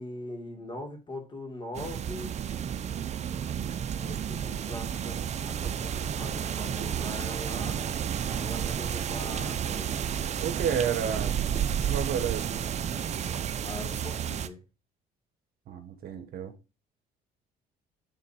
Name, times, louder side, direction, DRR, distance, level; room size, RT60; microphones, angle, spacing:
voice 1, 0.0-2.4 4.0-7.9 8.3-10.0 13.6-14.6, left 1 dB, 30° left, 2.6 m, -41 dB
sound 1, 1.8-14.5, right 8 dB, 40° right, 0.7 m, -31 dB
voice 2, 10.4-11.4 11.8-12.6 15.7-16.5, right 8 dB, 65° right, 1.2 m, -31 dB
8.9 x 3.8 x 4.9 m
cardioid pair, 110°, 17 cm